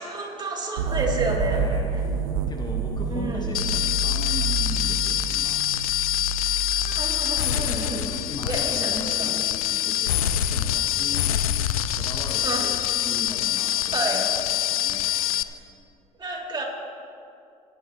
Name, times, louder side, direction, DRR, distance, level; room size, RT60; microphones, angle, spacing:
voice 1, 0.0-1.6 1.9-2.0 3.1-3.5 6.7-8.0 8.4-9.3 12.4-12.7 13.9-14.5 16.2-16.6, right 2 dB, 25° right, -1 dB, 2.9 m, -30 dB
sound 1, 0.8-7.5, right 3 dB, 75° right, 0.9 m, -28 dB
voice 2, 1.5-5.6 7.5-11.3 11.9-15.3, left 3 dB, 25° left, 1 dB, 1.3 m, -38 dB
sound 2, 3.5-15.4, left 11 dB, 85° left, 0.4 m, -25 dB
18.0 x 11.0 x 3.0 m, 2.4 s
hypercardioid pair, 60°, 18 cm